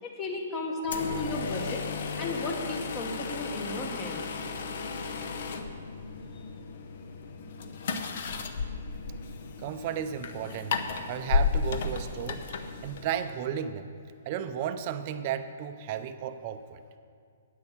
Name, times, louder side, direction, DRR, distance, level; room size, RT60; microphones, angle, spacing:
voice 1, 0.0-1.8 2.2-4.2 6.3-6.4, left 2 dB, 25° left, 2 dB, 1.3 m, -34 dB
sound 1, 0.8-13.4, left 4 dB, 60° left, 0.7 m, -34 dB
voice 2, 9.6-10.8 11.1-13.9 14.3-16.8, right 9 dB, 40° right, 10 dB, 0.5 m, -34 dB
9.2 x 6.5 x 7.3 m, 2.2 s
hypercardioid pair, 150°, 0 cm